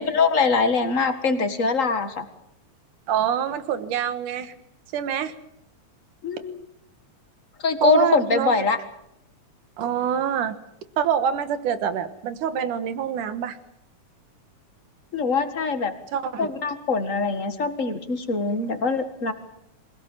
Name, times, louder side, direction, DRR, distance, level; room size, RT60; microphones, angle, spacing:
voice 1, 0.0-2.2 6.2-6.6 7.6-8.8 15.1-15.9 16.4-19.3, left 4 dB, 30° left, 8 dB, 1.6 m, -23 dB
voice 2, 3.1-4.5 4.9-5.3 7.8-8.7 9.8-10.6 11.0-13.6 16.1-16.5, right 8 dB, 85° right, 11 dB, 2.9 m, -25 dB
25.5 x 17.5 x 7.5 m, 0.78 s
omnidirectional pair, 3.5 m